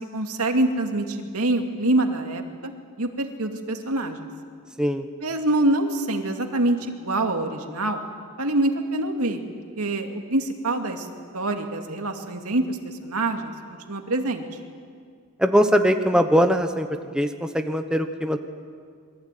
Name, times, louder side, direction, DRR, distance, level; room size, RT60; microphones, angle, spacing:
voice 1, 0.0-2.7 3.0-4.3 5.2-8.0 8.4-9.4 9.8-11.1 11.3-13.5 13.9-14.5, right 2 dB, 85° right, 4 dB, 2.5 m, -25 dB
voice 2, 15.4-16.9 17.1-17.3 17.5-18.4, equal, 5° right, 6 dB, 1.1 m, -20 dB
27.0 x 22.5 x 9.3 m, 2.1 s
head